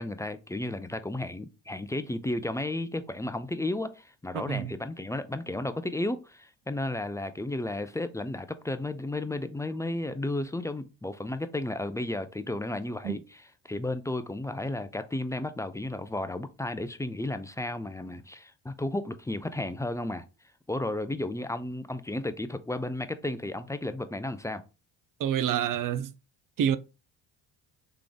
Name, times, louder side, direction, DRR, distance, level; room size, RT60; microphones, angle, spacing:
voice 1, 0.0-20.2 20.7-24.6, left 1 dB, 5° left, 0.4 m, -33 dB
voice 2, 4.3-4.7 13.0-13.2 25.2-26.1 26.6-26.8, right 9 dB, 45° right, 0.5 m, -27 dB
3.7 x 3.3 x 3.8 m
supercardioid pair, 65°, 46 cm